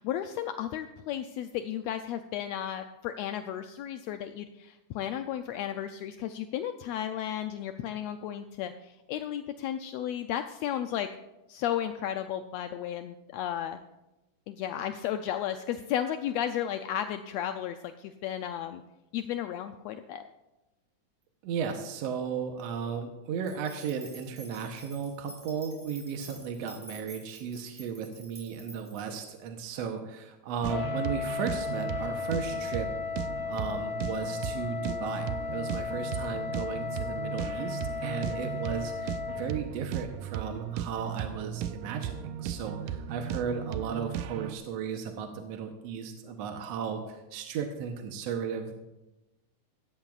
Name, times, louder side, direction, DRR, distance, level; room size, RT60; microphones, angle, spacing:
voice 1, 0.0-11.1 11.5-13.8 14.5-18.8 19.1-20.3, left 10 dB, 85° left, 8 dB, 1.5 m, -34 dB
voice 2, 21.4-32.9 33.5-48.7, right 6 dB, 70° right, 4 dB, 1.8 m, -35 dB
sound 1, 23.4-29.2, right 1 dB, 10° right, 3.9 m, -50 dB
sound 2, 30.6-44.5, right 9 dB, 85° right, 2.2 m, -36 dB
Wind instrument woodwind instrument, 30.7-39.6, left 6 dB, 45° left, 2.0 m, -35 dB
17.5 x 13.5 x 2.4 m, 1.0 s
omnidirectional pair, 3.5 m